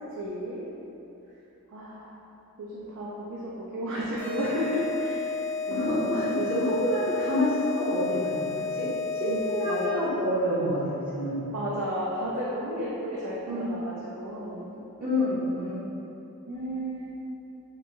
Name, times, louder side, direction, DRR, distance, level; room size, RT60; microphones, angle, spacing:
voice 1, 0.1-0.6 1.7-2.0 2.6-3.4 3.7-5.3 5.7-6.2 9.3-9.4 9.7-10.0 11.5-14.7 16.5-17.1, equal, 75° right, -6 dB, 0.5 m, -32 dB
sound 1, 4.2-10.1, left 4 dB, 55° left, 0.8 m, -32 dB
voice 2, 5.7-11.4 13.5-13.7 15.0-15.9, equal, 40° right, -11 dB, 0.7 m, -28 dB
4.5 x 2.6 x 2.7 m, 3.0 s
head